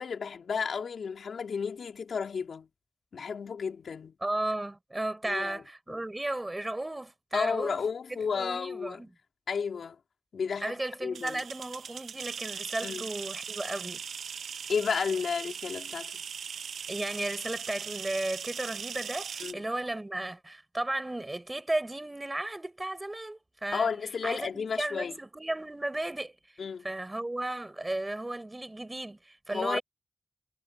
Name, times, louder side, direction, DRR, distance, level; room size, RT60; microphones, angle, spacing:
voice 1, 0.0-2.7 3.1-4.1 5.2-5.6 5.9-6.0 7.3-9.1 9.5-10.0 10.3-10.8 11.0-11.4 12.8-13.1 14.7-16.2 19.4-19.6 23.7-25.2 26.6-26.8 29.5-29.8, left 6 dB, 75° left, 3.8 m, -32 dB
voice 2, 4.2-7.8 8.3-9.1 10.6-14.0 16.9-23.9 24.2-26.3 26.8-29.8, right 1 dB, 20° right, 7.9 m, -34 dB
sound 1, 11.2-19.5, right 7 dB, 85° right, 1.3 m, -39 dB
cardioid pair, 55°, 0 cm